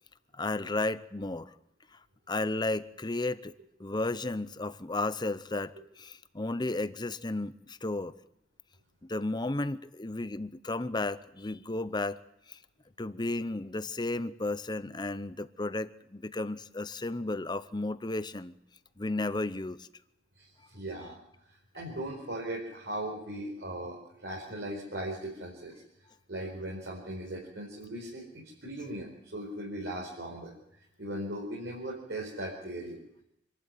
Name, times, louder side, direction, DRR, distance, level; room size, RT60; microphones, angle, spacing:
voice 1, 0.4-1.5 2.3-3.5 3.8-5.7 6.0-8.1 9.0-12.2 12.5-12.6 13.0-18.5 19.0-19.9, left 2 dB, 25° left, 13 dB, 0.8 m, -33 dB
voice 2, 20.4-21.2 21.7-25.8 26.3-30.5 31.0-33.0, right 1 dB, 75° right, -2 dB, 4.8 m, -38 dB
26.0 x 12.0 x 9.4 m, 0.79 s
head